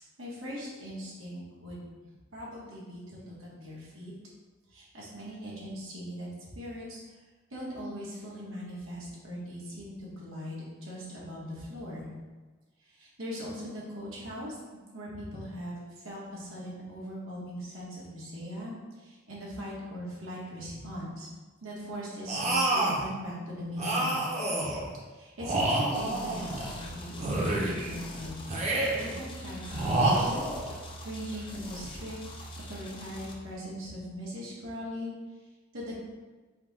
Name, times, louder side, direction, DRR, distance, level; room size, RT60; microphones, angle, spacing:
voice 1, 0.2-1.9 2.3-4.1 4.7-7.0 7.5-12.1 12.9-14.6 14.9-15.8 16.0-21.3 21.6-24.3 25.1-28.3 28.6-30.4 31.0-32.2 32.7-35.1 35.7-36.0, equal, 90° right, -6 dB, 1.4 m, -40 dB
sound 1, 22.3-23.1 23.8-24.9 25.4-26.8 27.2-28.0 28.5-29.2 29.7-30.7, right 2 dB, 35° right, 0.7 m, -28 dB
sound 2, 25.9-33.3, equal, 25° left, 0.5 m, -43 dB
4.4 x 2.3 x 4.1 m, 1.3 s
head